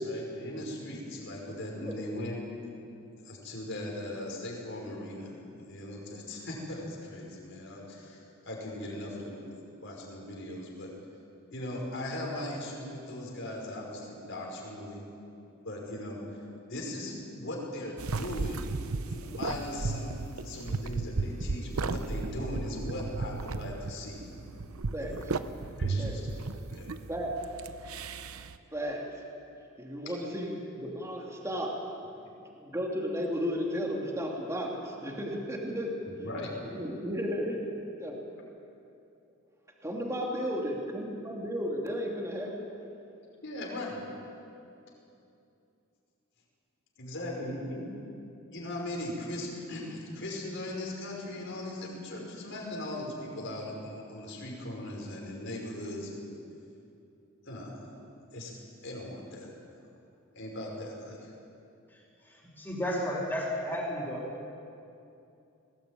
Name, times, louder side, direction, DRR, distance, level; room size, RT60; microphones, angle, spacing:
voice 1, 0.0-2.4 3.1-5.3 5.6-8.2 8.4-10.9 11.5-15.0 15.6-16.2 16.7-18.8 19.1-24.2 25.0-25.2 25.8-26.3 26.7-26.9 36.1-36.5 43.4-44.0 47.0-47.8 48.5-56.2 57.4-57.8 58.3-58.5 58.8-59.5 60.3-61.3, left 1 dB, 60° left, -2 dB, 5.6 m, -39 dB
sound 1, 18.0-28.6, right 3 dB, 85° right, 0.8 m, -35 dB
voice 2, 28.7-29.0 29.8-31.8 32.6-36.0 36.7-37.7 38.0-38.2 39.8-42.7, equal, 15° right, -1 dB, 2.7 m, -34 dB
voice 3, 62.3-64.3, equal, 10° left, -6 dB, 4.8 m, -33 dB
20.5 x 18.5 x 9.1 m, 2.7 s
head